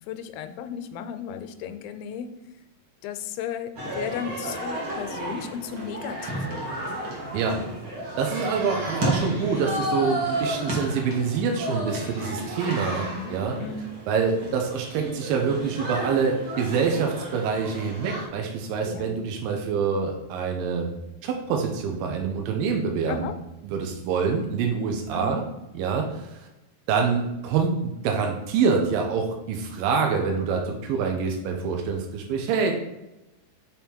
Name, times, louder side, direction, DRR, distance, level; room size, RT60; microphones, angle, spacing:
voice 1, 0.1-2.3 3.0-7.0 12.9-13.3 13.6-13.9 18.8-19.2 23.1-23.3 25.1-25.4, left 7 dB, 85° left, 9 dB, 2.4 m, -35 dB
sound 1, 3.8-18.3, right 1 dB, 55° right, 1.3 m, -32 dB
voice 2, 8.2-13.6 14.1-20.9 21.2-23.3 23.6-25.4 25.7-26.5 26.9-32.7, right 5 dB, 80° right, 2 dB, 2.4 m, -26 dB
6.2 x 3.6 x 4.3 m, 0.95 s
omnidirectional pair, 4.1 m